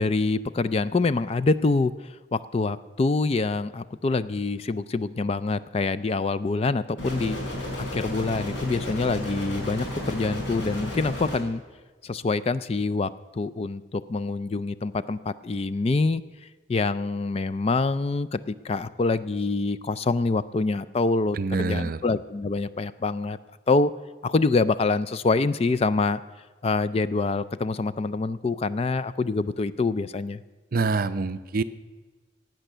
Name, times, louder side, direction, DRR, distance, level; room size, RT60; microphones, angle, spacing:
voice 1, 0.0-7.4 7.9-11.6 12.0-16.2 16.7-23.4 23.7-23.9 24.2-26.2 26.6-30.4, left 3 dB, 30° left, 15 dB, 0.4 m, -25 dB
sound 1, 7.0-11.4, left 1 dB, 75° left, 4.7 m, -33 dB
voice 2, 21.4-22.0 30.7-31.6, right 3 dB, 50° right, 13 dB, 0.5 m, -25 dB
16.5 x 9.1 x 6.7 m, 1.3 s
head